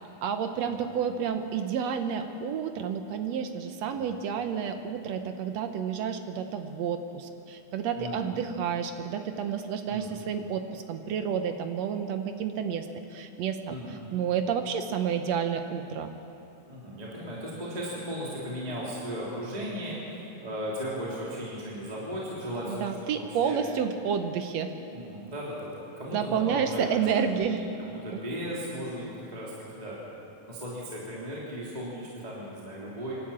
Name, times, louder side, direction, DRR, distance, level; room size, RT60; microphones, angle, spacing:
voice 1, 0.2-16.1 22.7-24.7 26.1-27.6 28.1-28.2, right 7 dB, 70° right, 7 dB, 1.6 m, -30 dB
voice 2, 8.0-8.3 9.9-10.1 13.7-13.9 16.7-23.6 24.9-26.9 27.4-30.0 30.5-33.2, equal, 10° right, -6 dB, 3.1 m, -36 dB
26.0 x 12.5 x 8.7 m, 3.0 s
omnidirectional pair, 4.1 m